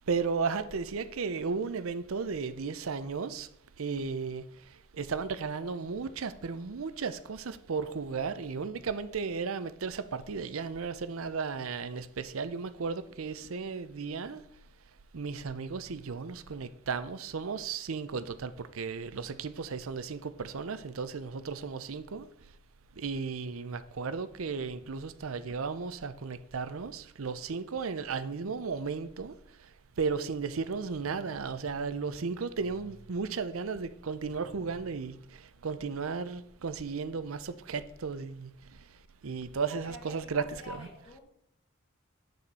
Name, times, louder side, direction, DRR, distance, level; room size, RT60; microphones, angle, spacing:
voice 1, 0.1-3.5 3.8-4.4 4.9-14.4 15.1-22.3 23.0-29.3 30.0-38.5 39.2-40.9, right 5 dB, 80° right, 0.6 m, -35 dB
voice 2, 39.7-41.2, left 2 dB, 20° left, 1.5 m, -47 dB
9.2 x 7.9 x 4.2 m
head